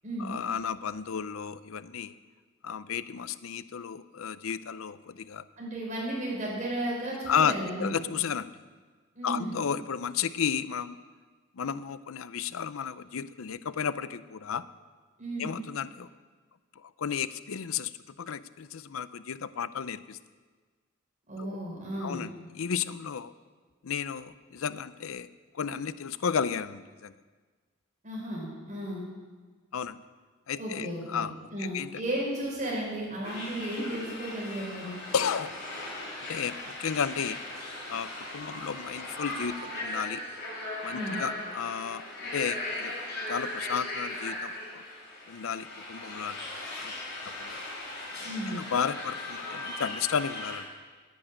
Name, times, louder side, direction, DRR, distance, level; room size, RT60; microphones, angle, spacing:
voice 1, 0.2-2.2 2.6-5.4 7.2-8.5 9.2-11.0 11.5-14.6 15.4-16.1 16.8-20.2 21.4-21.6 22.0-23.3 23.8-25.3 25.5-27.2 29.7-30.0 30.5-31.3 31.6-32.0 35.1-35.6 36.3-37.4 37.9-40.2 40.8-42.0 42.3-42.9 43.3-44.8 45.3-46.5 46.8-46.9 47.4-47.6 48.5-50.7, left 7 dB, 90° left, 15 dB, 0.5 m, -33 dB
voice 2, 5.6-8.0 9.1-9.5 15.2-15.5 21.3-22.3 28.0-29.1 30.6-35.0 40.9-41.2 48.2-48.5, right 1 dB, 35° right, -4 dB, 5.8 m, -34 dB
sound 1, 33.2-50.6, left 2 dB, 50° left, 6.1 m, -38 dB
11.5 x 10.5 x 8.9 m, 1.4 s
head